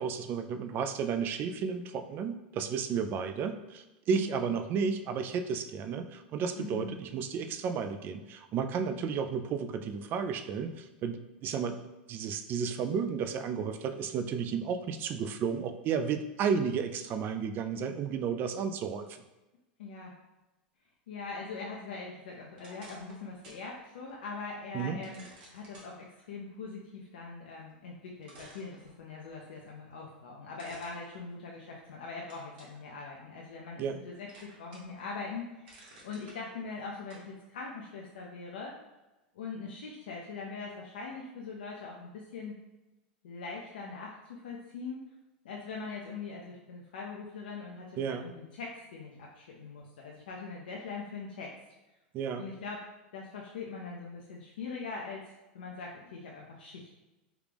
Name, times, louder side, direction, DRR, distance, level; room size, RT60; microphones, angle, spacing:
voice 1, 0.0-11.8 12.1-19.2 24.7-25.0 33.8-34.0 48.0-48.3 52.1-52.5, right 6 dB, 40° right, 8 dB, 0.3 m, -33 dB
voice 2, 4.1-4.5 6.6-7.0 19.8-20.2 21.1-25.2 25.5-35.7 36.0-38.7 39.3-42.5 43.2-45.0 45.4-51.5 52.4-52.9 53.1-55.3 55.5-56.9, left 4 dB, 80° left, -2 dB, 0.5 m, -42 dB
sound 1, 22.5-23.7 24.1-24.2 25.0-25.9 27.7-27.8 28.2-29.3 30.6-31.8 32.3-32.8 33.3-34.0 34.3-35.0 35.4-36.4 37.1-37.3, right 1 dB, 70° right, 1.1 m, -54 dB
3.4 x 2.4 x 3.3 m, 1.0 s
hypercardioid pair, 95°, 5 cm